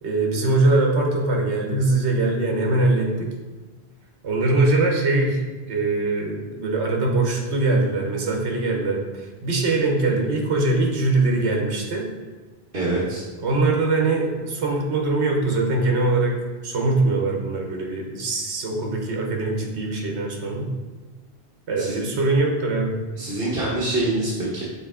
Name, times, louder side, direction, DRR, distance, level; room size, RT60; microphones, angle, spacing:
voice 1, 0.0-3.3 4.2-5.4 5.7-12.1 13.4-16.4 16.6-20.7 21.7-23.0, right 2 dB, 80° right, 1 dB, 1.3 m, -22 dB
voice 2, 12.7-13.2 21.8-22.0 23.1-24.6, right 2 dB, 60° right, -8 dB, 1.5 m, -25 dB
6.7 x 4.0 x 3.7 m, 1.3 s
omnidirectional pair, 1.1 m